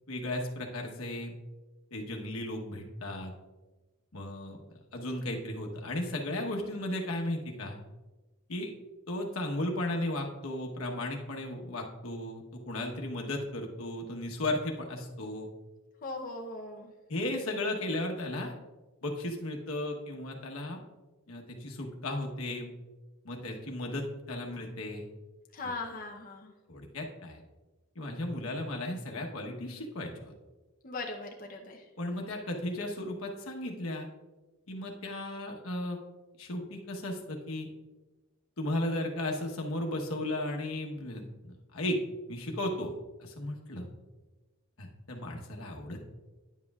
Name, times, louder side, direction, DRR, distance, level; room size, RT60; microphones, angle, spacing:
voice 1, 0.1-1.3 1.9-3.3 4.1-4.6 4.9-7.8 8.5-8.7 9.1-15.5 17.1-18.5 19.0-20.8 21.3-22.7 23.2-25.1 26.7-27.4 27.9-30.3 32.0-34.1 34.7-36.0 36.4-37.7 38.6-42.0 42.3-43.9 44.8-46.0, left 1 dB, 85° left, 1 dB, 1.1 m, -35 dB
voice 2, 16.0-16.9 25.5-26.5 30.8-31.8, left 2 dB, 40° left, 0 dB, 0.7 m, -39 dB
10.0 x 7.6 x 2.4 m, 1.2 s
head